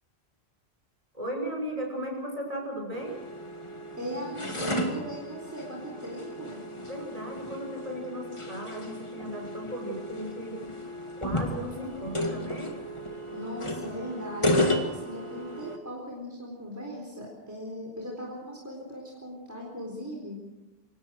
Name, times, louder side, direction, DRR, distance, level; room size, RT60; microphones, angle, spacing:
voice 1, 1.1-3.2 6.9-10.8 11.2-12.7, equal, 35° right, 1 dB, 6.0 m, -36 dB
sound 1, 2.9-15.8, left 1 dB, 30° left, 2.1 m, -33 dB
voice 2, 4.0-6.6 13.3-20.5, equal, 15° right, -2 dB, 4.1 m, -38 dB
26.0 x 18.0 x 6.5 m, 1.0 s
omnidirectional pair, 1.0 m